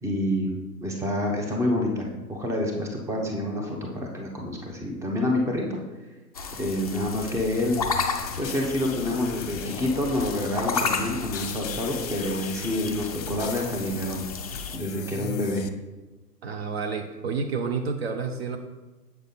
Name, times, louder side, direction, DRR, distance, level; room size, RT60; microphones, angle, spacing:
voice 1, 0.0-5.6 6.6-7.8 8.4-14.2 14.7-15.6, left 1 dB, 5° right, 0 dB, 0.9 m, -28 dB
sound 1, 6.3-14.8, left 4 dB, 25° left, 0.4 m, -33 dB
sound 2, 7.8-15.7, left 9 dB, 45° left, 0.8 m, -39 dB
voice 2, 16.4-18.6, right 5 dB, 40° right, 5 dB, 0.7 m, -29 dB
7.8 x 6.6 x 4.0 m, 1.1 s
figure-of-eight pair, 115°, 49 cm